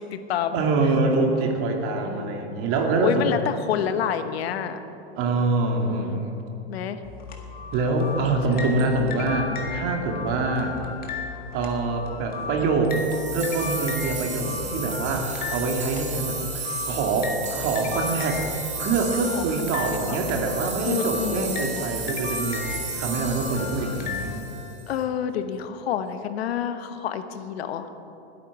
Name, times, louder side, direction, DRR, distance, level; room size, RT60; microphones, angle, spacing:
voice 1, 0.0-0.9 2.0-2.6 3.0-4.8 5.8-6.2 6.7-7.0 8.2-8.7 19.3-19.4 20.1-20.2 20.8-21.5 24.9-27.9, left 9 dB, 75° left, 10 dB, 1.0 m, -29 dB
voice 2, 0.5-3.2 5.2-6.4 7.7-10.8 11.5-13.0 13.3-18.4 18.8-22.6 22.9-24.4, right 3 dB, 45° right, 2 dB, 2.2 m, -25 dB
sound 1, 7.0-24.3, left 4 dB, 30° left, 1.7 m, -35 dB
sound 2, 12.9-24.9, right 5 dB, 20° right, 2.2 m, -34 dB
20.0 x 9.2 x 4.7 m, 3.0 s
hypercardioid pair, 130°, 32 cm